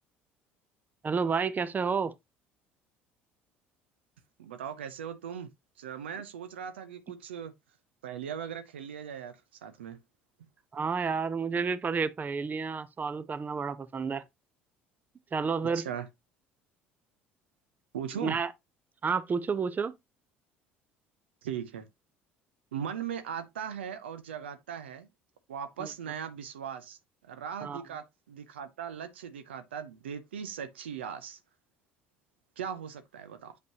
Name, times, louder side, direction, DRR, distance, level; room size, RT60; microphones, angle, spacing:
voice 1, 1.0-2.1 10.7-14.2 15.3-15.8 18.2-18.5 19.0-19.9 25.8-25.9 27.6-27.8, right 5 dB, 30° right, 0.7 m, -30 dB
voice 2, 4.4-5.5 5.8-7.5 8.0-10.0 15.7-16.1 17.9-18.4 21.4-21.9 22.7-25.1 25.5-27.0 27.2-31.4 32.6-33.5, right 8 dB, 80° right, 0.8 m, -39 dB
8.1 x 5.2 x 2.9 m
hypercardioid pair, 60°, 6 cm